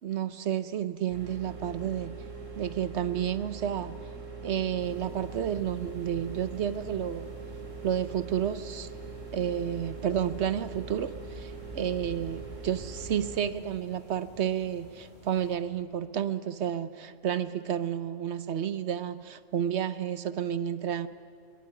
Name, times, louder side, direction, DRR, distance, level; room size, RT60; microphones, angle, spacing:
voice 1, 0.0-2.2 2.6-4.0 4.4-7.3 7.8-8.9 9.3-21.1, right 9 dB, 65° right, 13 dB, 1.0 m, -31 dB
sound 1, 1.1-13.4, right 4 dB, 85° right, 3.1 m, -42 dB
sound 2, 4.8-15.6, left 1 dB, 15° right, 7.9 m, -50 dB
23.0 x 18.0 x 9.8 m, 2.4 s
omnidirectional pair, 1.3 m